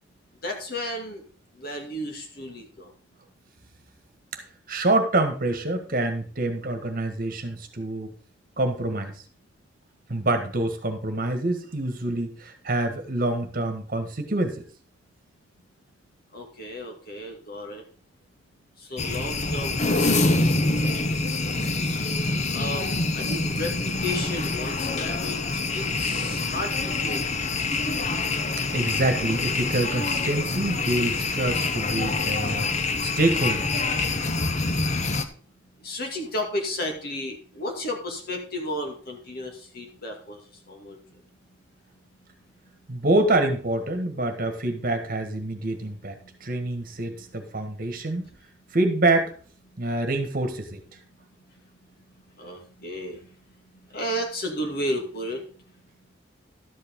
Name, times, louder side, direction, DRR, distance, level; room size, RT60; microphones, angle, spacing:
voice 1, 0.4-1.2 1.5-2.9 16.3-17.8 18.8-21.0 22.5-27.3 35.8-41.0 52.4-53.2 53.9-55.4, left 1 dB, 55° left, 3 dB, 2.3 m, -33 dB
voice 2, 4.7-8.1 8.6-9.2 10.1-14.6 21.5-21.9 26.3-26.4 28.5-32.7 33.0-33.7 42.9-46.1 46.4-48.3 48.7-49.3 49.8-50.8, right 2 dB, 50° right, 6 dB, 1.6 m, -26 dB
sound 1, 19.0-35.2, left 3 dB, 40° left, 0.8 m, -26 dB
12.0 x 8.0 x 3.7 m, 0.43 s
head